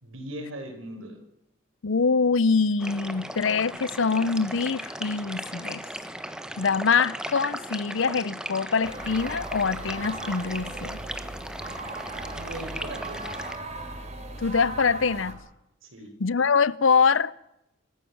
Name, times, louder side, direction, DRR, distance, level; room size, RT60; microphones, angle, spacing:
voice 1, 0.0-1.2 12.1-13.4 15.8-16.1, right 1 dB, 85° right, 5.4 m, -39 dB
voice 2, 1.8-5.8 6.6-11.0 14.4-15.4 16.2-17.3, left 5 dB, 75° left, 0.7 m, -24 dB
sound 1, 2.8-13.6, right 1 dB, 5° right, 1.2 m, -37 dB
sound 2, 8.8-15.3, right 2 dB, 35° right, 3.3 m, -38 dB
26.0 x 15.0 x 7.2 m
head